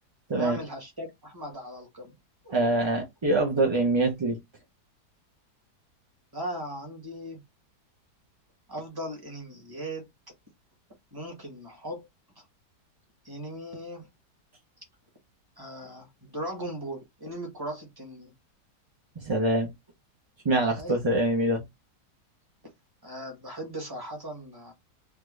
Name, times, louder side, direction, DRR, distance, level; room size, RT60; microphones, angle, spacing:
voice 1, 0.3-2.2 6.3-7.4 8.7-10.1 11.1-12.1 12.4-12.5 13.2-14.1 15.6-18.3 20.8-21.0 23.0-24.7, equal, 15° right, 1.2 m, -38 dB
voice 2, 2.5-4.4 19.3-19.7 20.4-21.6, right 2 dB, 40° right, 0.3 m, -24 dB
3.7 x 2.3 x 3.1 m
omnidirectional pair, 1.8 m